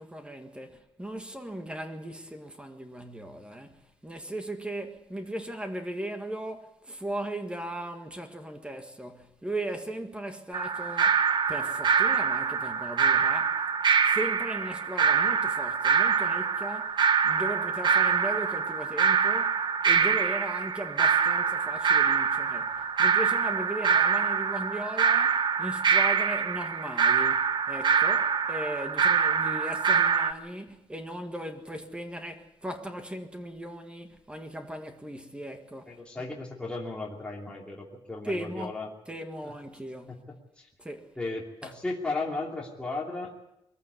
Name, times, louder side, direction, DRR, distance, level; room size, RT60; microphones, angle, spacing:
voice 1, 0.0-13.6 14.0-17.0 17.2-36.2 38.2-38.8 39.1-40.2 40.8-41.1 41.6-41.7, right 1 dB, 10° right, 1.7 m, -38 dB
sound 1, 10.5-30.3, right 6 dB, 50° right, 0.9 m, -25 dB
voice 2, 35.9-38.9 39.4-39.5 40.1-40.2 40.6-40.7 41.2-43.3, left 3 dB, 10° left, 2.8 m, -35 dB
22.0 x 15.0 x 8.2 m
wide cardioid pair, 160°, 10 cm